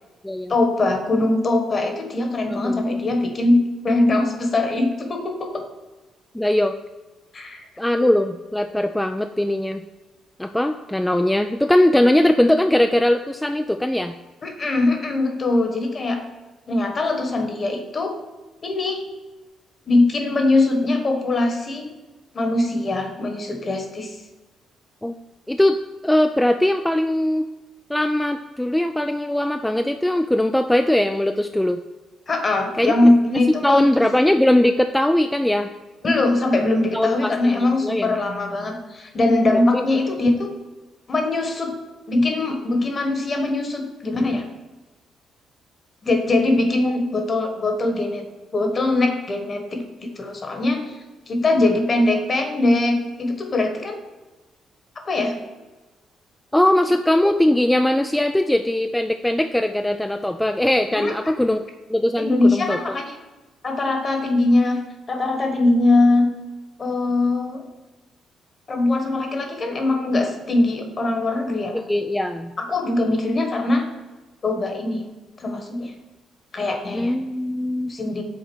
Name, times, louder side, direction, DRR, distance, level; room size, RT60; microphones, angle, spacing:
voice 1, 0.5-5.6 7.3-7.6 8.0-8.1 14.4-16.2 16.7-18.2 18.6-19.0 19.9-21.9 22.3-24.2 32.3-34.1 36.0-40.5 41.1-41.8 42.1-44.4 46.0-48.2 48.5-51.0 51.3-54.0 54.9-55.4 61.0-61.1 62.2-63.1 63.6-64.8 65.1-66.3 66.8-67.6 68.7-71.8 72.6-73.8 74.4-75.0 75.4-75.9 76.5-77.1 77.9-78.2, left 2 dB, 40° left, 4 dB, 1.3 m, -21 dB
voice 2, 2.5-2.8 6.3-6.7 7.8-9.8 10.4-14.1 25.0-25.1 25.5-27.5 27.9-31.8 32.8-33.1 33.6-35.7 36.9-38.1 39.5-39.8 56.5-61.6 61.9-62.8 71.7-72.5 76.9-77.9, left 1 dB, 5° left, 6 dB, 0.3 m, -20 dB
6.4 x 3.9 x 6.1 m, 1.2 s
cardioid pair, 90°, 0 cm